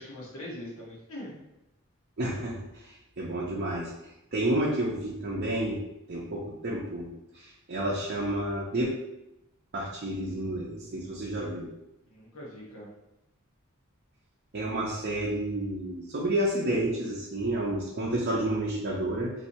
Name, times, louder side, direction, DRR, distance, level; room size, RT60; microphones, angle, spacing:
voice 1, 0.0-1.4 12.1-12.9, left 1 dB, 65° left, -4 dB, 0.9 m, -42 dB
voice 2, 2.2-3.9 4.3-5.8 6.1-7.1 7.3-8.9 9.7-11.7 14.5-19.3, right 1 dB, 45° right, -4 dB, 0.6 m, -30 dB
4.2 x 2.6 x 2.7 m, 0.89 s
head